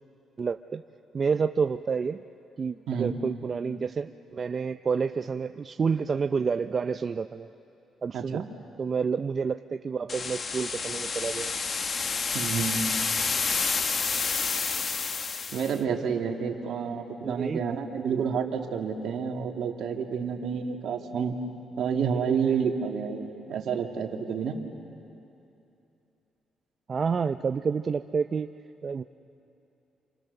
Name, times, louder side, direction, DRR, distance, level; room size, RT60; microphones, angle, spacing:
voice 1, 0.4-0.8 1.1-2.2 2.6-7.5 8.0-8.5 8.8-11.5 17.2-17.6 26.9-28.5 28.8-29.0, right 5 dB, 40° right, 8 dB, 0.5 m, -29 dB
voice 2, 2.9-3.2 8.1-8.4 12.3-13.0 15.5-21.4 21.8-24.6, right 6 dB, 70° right, 2 dB, 2.3 m, -29 dB
sound 1, 10.1-15.8, left 5 dB, 45° left, 1.2 m, -29 dB
29.5 x 27.0 x 6.8 m, 2.8 s
cardioid pair, 90°, 0 cm